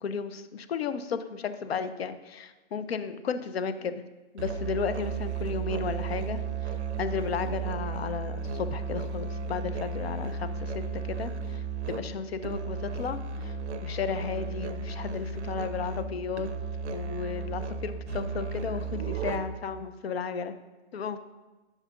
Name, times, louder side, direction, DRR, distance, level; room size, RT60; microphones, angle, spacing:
voice 1, 0.0-4.0 4.3-6.4 7.0-11.3 11.9-13.5 13.8-16.5 16.9-20.5 20.9-21.2, left 6 dB, 60° left, 11 dB, 0.5 m, -33 dB
Musical instrument, 4.4-19.7, right 5 dB, 65° right, 0.6 m, -34 dB
9.6 x 5.5 x 2.3 m, 1.2 s
hypercardioid pair, 175°, 36 cm